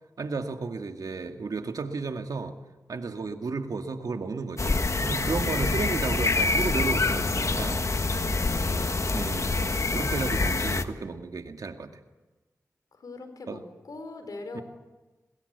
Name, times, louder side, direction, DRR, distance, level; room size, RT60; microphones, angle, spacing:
voice 1, 0.2-2.5 2.9-4.8 5.0-7.8 9.1-9.5 9.9-11.9 13.5-13.6 14.5-14.6, right 4 dB, 80° right, 5 dB, 2.1 m, -33 dB
sound 1, 4.6-10.8, left 3 dB, 55° left, 1.6 m, -26 dB
voice 2, 8.1-9.1 12.9-14.6, left 2 dB, 85° left, 7 dB, 4.2 m, -43 dB
24.5 x 20.5 x 8.2 m, 1.2 s
cardioid pair, 40°, 6 cm